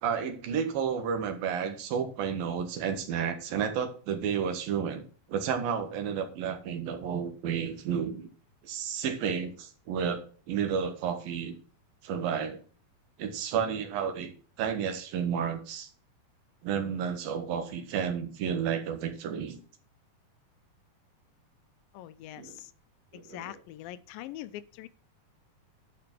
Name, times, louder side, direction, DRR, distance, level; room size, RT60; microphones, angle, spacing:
voice 1, 0.0-5.0 5.3-8.3 8.6-11.6 12.0-12.6 13.2-14.3 14.6-15.9 16.6-19.6 22.4-22.6 23.1-23.6, right 7 dB, 75° right, 3.2 m, -31 dB
voice 2, 21.9-22.7 23.1-24.9, left 13 dB, 85° left, 2.4 m, -43 dB
11.5 x 5.1 x 6.0 m
omnidirectional pair, 4.2 m